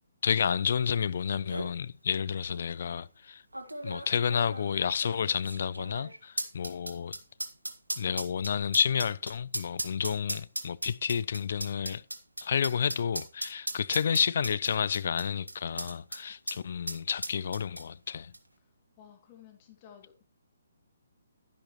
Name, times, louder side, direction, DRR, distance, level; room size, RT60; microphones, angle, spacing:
voice 1, 0.2-3.4 3.8-7.2 8.0-12.0 12.4-18.3, left 7 dB, 55° left, 0.5 m, -30 dB
sound 1, 1.0-1.1 1.3-1.7 2.5-2.6 3.5-16.2 16.5-16.6 16.9-18.1 18.3-18.4, right 1 dB, 90° right, 1.6 m, -37 dB
voice 2, 19.0-20.2, left 9 dB, 30° left, 2.5 m, -54 dB
11.5 x 10.5 x 3.1 m
figure-of-eight pair, 135°, 0 cm